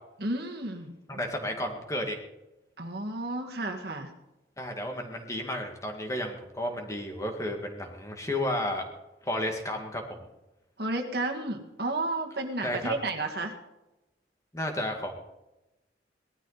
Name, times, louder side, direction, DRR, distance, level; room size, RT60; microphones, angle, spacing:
voice 1, 0.2-1.2 2.8-4.1 10.8-13.5, right 2 dB, 60° right, 3 dB, 2.0 m, -32 dB
voice 2, 1.1-2.2 4.6-8.9 9.2-10.2 12.6-12.9 14.5-15.2, left 1 dB, 15° left, 3 dB, 2.1 m, -32 dB
19.5 x 13.0 x 4.1 m, 0.96 s
head